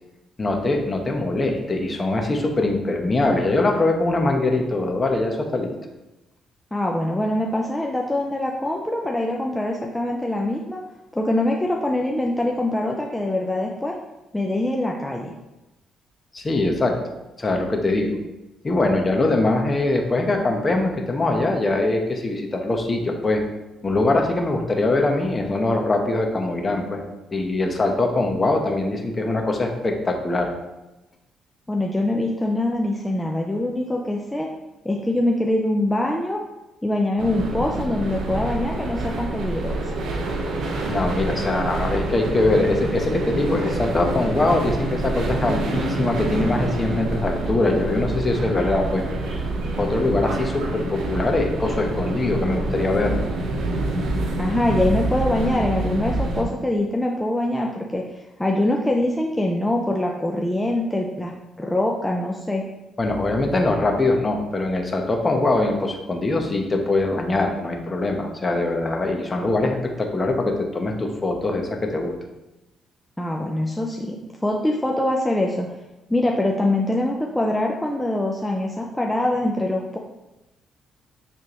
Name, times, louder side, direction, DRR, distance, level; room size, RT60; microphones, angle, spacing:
voice 1, 0.4-5.7 16.3-16.9 17.4-18.2 18.6-23.4 23.8-27.0 27.3-30.5 40.9-49.0 49.8-53.3 63.0-72.1, left 2 dB, 30° left, 3 dB, 1.0 m, -22 dB
voice 2, 6.7-10.8 11.1-13.9 14.3-15.3 31.7-34.5 34.8-36.4 36.8-39.9 54.4-62.6 73.2-75.7 76.1-80.0, left 1 dB, 10° left, -1 dB, 0.6 m, -24 dB
sound 1, 37.2-56.4, right 2 dB, 75° right, 0.9 m, -27 dB
9.4 x 3.5 x 3.0 m, 1.0 s
cardioid pair, 90°, 0 cm